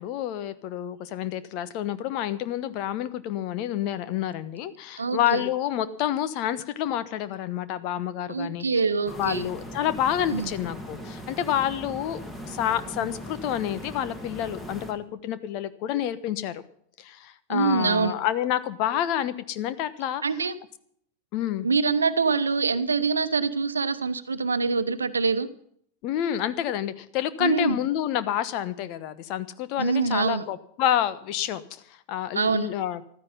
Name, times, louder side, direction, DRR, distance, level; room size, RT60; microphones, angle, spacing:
voice 1, 0.0-8.8 9.1-12.2 12.5-16.6 17.0-20.2 21.3-21.7 26.0-31.8 32.1-33.0, left 11 dB, 40° left, 13 dB, 1.1 m, -28 dB
voice 2, 5.0-5.4 8.3-9.5 10.3-10.6 17.5-18.2 20.2-20.5 21.6-25.5 27.4-27.8 29.8-30.4 32.3-32.7, right 4 dB, 75° right, 12 dB, 1.0 m, -25 dB
sound 1, 9.1-14.9, equal, 10° left, 2.8 m, -39 dB
15.0 x 13.0 x 5.5 m, 0.65 s
figure-of-eight pair, 90°, 0 cm